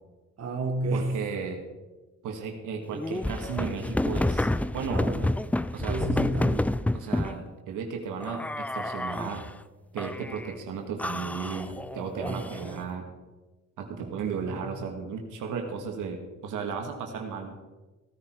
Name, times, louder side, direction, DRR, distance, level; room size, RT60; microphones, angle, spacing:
voice 1, 0.4-1.1 4.9-5.3 5.9-6.7 12.3-12.8 14.0-14.6, right 2 dB, 55° right, 3 dB, 1.7 m, -31 dB
voice 2, 0.9-1.6 2.2-4.5 4.7-5.0 5.7-6.0 6.9-9.4 9.9-13.1 13.8-17.6, right 6 dB, 85° right, 3 dB, 2.2 m, -35 dB
sound 1, 2.9-7.4 8.2-9.5 10.0-10.5 11.0-12.8, left 1 dB, 5° left, 0.4 m, -29 dB
16.0 x 10.0 x 4.7 m, 1.2 s
cardioid pair, 90°, 30 cm